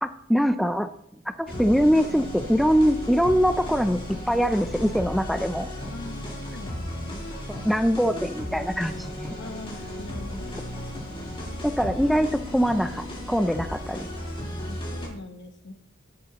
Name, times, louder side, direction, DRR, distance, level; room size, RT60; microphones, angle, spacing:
voice 1, 0.0-0.9 1.4-5.7 7.5-9.4 11.6-14.1, equal, ahead, 9 dB, 0.3 m, -23 dB
sound 1, 1.5-15.1, left 1 dB, 25° left, 3.6 m, -35 dB
voice 2, 5.9-7.3 9.4-10.6 14.7-15.7, left 2 dB, 60° left, 7 dB, 1.1 m, -42 dB
15.0 x 10.5 x 2.9 m, 0.73 s
head